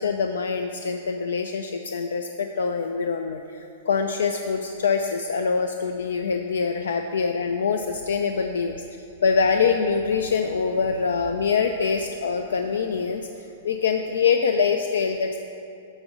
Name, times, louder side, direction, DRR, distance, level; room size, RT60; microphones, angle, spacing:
voice 1, 0.0-8.8 9.2-15.4, left 5 dB, 90° left, 6 dB, 0.4 m, -24 dB
8.7 x 5.0 x 5.2 m, 2.7 s
hypercardioid pair, 135°, 0 cm